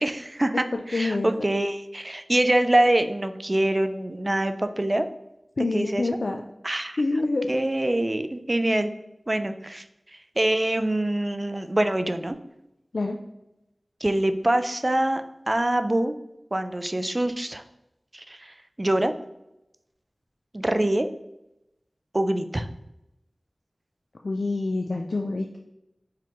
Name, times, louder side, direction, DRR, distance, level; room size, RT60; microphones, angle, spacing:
voice 1, 0.0-5.1 5.7-6.1 6.6-7.0 7.5-8.9 9.3-9.8 10.4-12.4 14.0-16.1 16.5-17.6 18.1-19.1 20.5-21.1 22.1-22.7, right 1 dB, 35° right, 9 dB, 0.4 m, -24 dB
voice 2, 0.7-1.5 5.6-6.4 7.0-7.5 12.9-13.2 24.2-25.6, left 2 dB, 80° left, 3 dB, 0.3 m, -27 dB
4.7 x 3.6 x 3.0 m, 0.90 s
wide cardioid pair, 40°, 0 cm